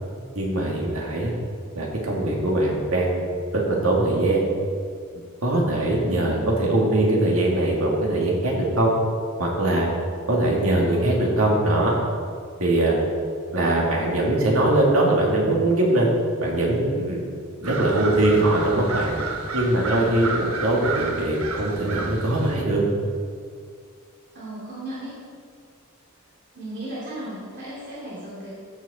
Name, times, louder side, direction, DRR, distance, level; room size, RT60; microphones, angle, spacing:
voice 1, 0.4-1.3 1.8-3.3 3.5-4.4 5.4-8.9 9.4-9.9 10.3-12.0 12.6-13.0 13.5-16.1 16.4-17.3 17.6-19.1 19.5-22.8, right 1 dB, 75° right, -2 dB, 2.2 m, -21 dB
voice 2, 6.0-6.6 10.7-11.3 17.8-18.2 24.3-25.2 26.5-28.5, right 1 dB, 55° right, -9 dB, 2.9 m, -36 dB
sound 1, 17.6-22.6, right 4 dB, 90° right, 1.2 m, -31 dB
14.5 x 6.4 x 4.3 m, 2.1 s
head